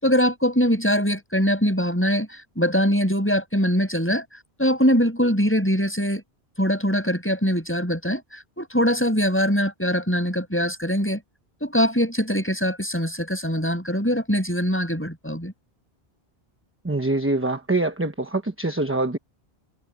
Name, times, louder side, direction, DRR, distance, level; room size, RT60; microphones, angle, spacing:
voice 1, 0.0-2.3 2.6-4.2 4.6-6.2 6.6-8.2 8.6-11.2 11.6-15.5, equal, 10° left, 7.7 m, -22 dB
voice 2, 16.8-19.2, right 2 dB, 15° right, 1.0 m, -24 dB
omnidirectional pair, 1.1 m